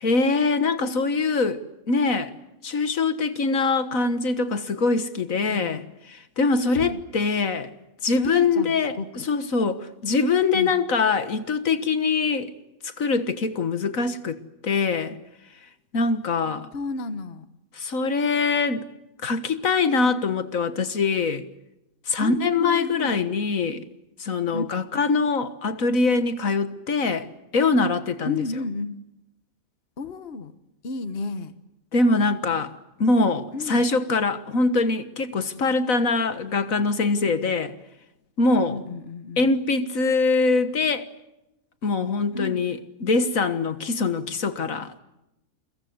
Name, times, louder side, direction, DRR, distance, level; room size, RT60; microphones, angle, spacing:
voice 1, 0.0-2.3 2.6-7.7 8.0-12.5 12.8-15.2 15.9-16.7 17.8-18.9 19.2-21.5 22.1-23.8 24.2-27.3 27.5-28.4 31.9-32.7 33.0-37.7 38.4-38.8 39.4-41.1 41.8-45.0, left 3 dB, 70° left, 1.9 m, -23 dB
voice 2, 5.5-5.8 6.7-7.0 8.2-9.3 10.5-10.7 16.7-17.5 22.2-23.2 24.5-24.6 28.2-29.0 30.0-30.5 30.8-31.5 33.5-33.9 38.7-39.6 42.3-42.6, left 3 dB, 45° left, 1.5 m, -32 dB
30.0 x 23.5 x 7.9 m
omnidirectional pair, 1.5 m